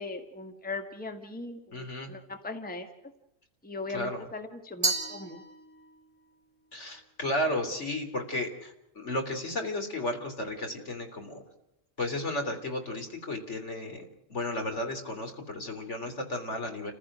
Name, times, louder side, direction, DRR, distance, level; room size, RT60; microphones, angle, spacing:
voice 1, 0.0-2.9 3.6-5.4, left 3 dB, 5° left, 6 dB, 1.5 m, -39 dB
voice 2, 1.7-2.1 3.9-4.2 6.7-11.4 12.0-16.9, left 1 dB, 65° left, 4 dB, 3.7 m, -33 dB
Glass, 4.8-6.1, right 3 dB, 25° right, 2.6 m, -32 dB
29.5 x 15.5 x 6.2 m, 0.85 s
omnidirectional pair, 1.3 m